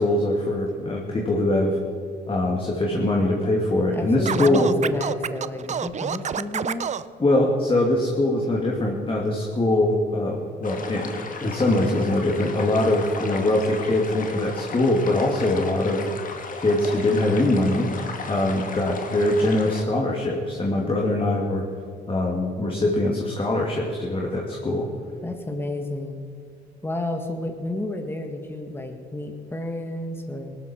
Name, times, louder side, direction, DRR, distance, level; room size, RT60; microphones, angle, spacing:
voice 1, 0.0-1.8 2.3-4.7 7.2-16.1 16.6-17.9 18.3-21.6 22.1-24.9, left 1 dB, 30° left, -1 dB, 2.5 m, -22 dB
voice 2, 3.9-6.9 25.2-26.2 26.8-30.6, left 1 dB, 10° left, 4 dB, 1.7 m, -31 dB
Scratching (performance technique), 4.2-7.0, right 7 dB, 40° right, 0.6 m, -28 dB
sound 1, 10.6-19.8, left 4 dB, 45° left, 1.9 m, -36 dB
18.5 x 13.0 x 4.5 m, 2.3 s
supercardioid pair, 70°, 18 cm